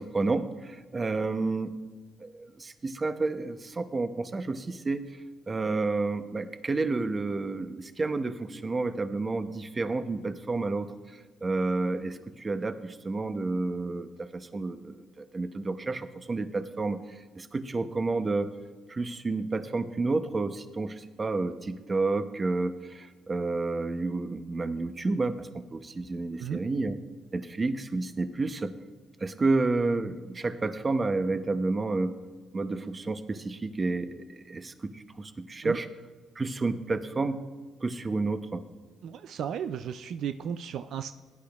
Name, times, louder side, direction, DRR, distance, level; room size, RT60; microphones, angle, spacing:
voice 1, 0.0-1.8 2.2-5.1 5.5-10.9 11.4-18.5 18.9-27.0 27.3-28.7 29.2-32.2 32.5-35.9 36.4-37.4 37.8-38.6, right 3 dB, 30° right, 10 dB, 0.7 m, -30 dB
voice 2, 39.0-41.2, right 8 dB, 70° right, 10 dB, 0.3 m, -34 dB
16.5 x 10.5 x 2.4 m, 1.4 s
cardioid pair, 90°, 0 cm